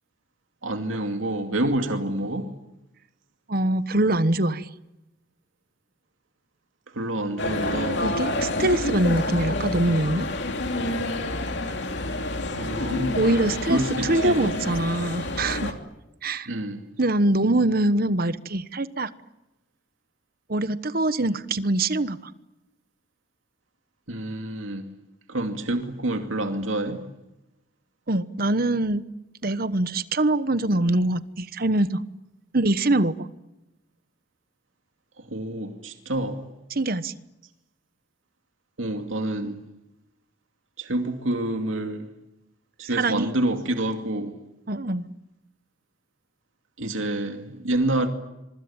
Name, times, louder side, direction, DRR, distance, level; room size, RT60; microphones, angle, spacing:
voice 1, 0.6-2.5 6.9-8.1 12.6-13.2 13.7-14.4 16.5-16.8 24.1-24.9 25.3-27.0 35.3-36.4 38.8-39.6 40.8-42.1 42.9-44.3 46.8-48.1, right 1 dB, 85° right, 2.6 m, -27 dB
voice 2, 3.5-4.7 8.0-10.3 13.1-15.7 16.2-16.5 17.0-19.1 20.5-22.3 28.1-29.0 29.4-32.0 32.5-33.3 36.7-37.1 42.9-43.3 44.7-45.1, right 2 dB, 50° right, 1.2 m, -23 dB
sound 1, 7.4-15.7, left 2 dB, 60° left, 3.0 m, -28 dB
26.0 x 24.0 x 8.9 m
head